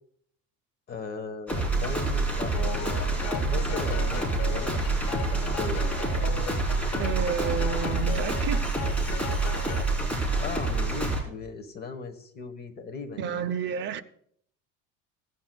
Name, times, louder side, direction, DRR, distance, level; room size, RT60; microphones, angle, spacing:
voice 1, 0.9-2.5 3.5-5.9 10.4-13.4, left 4 dB, 35° left, 1.1 m, -38 dB
sound 1, 1.5-11.2, right 3 dB, 5° left, 3.1 m, -27 dB
sound 2, 2.5-9.9, left 10 dB, 65° left, 0.9 m, -38 dB
voice 2, 7.0-8.6 13.2-14.0, right 7 dB, 40° right, 0.6 m, -30 dB
16.0 x 9.2 x 2.2 m
cardioid pair, 150°, 29 cm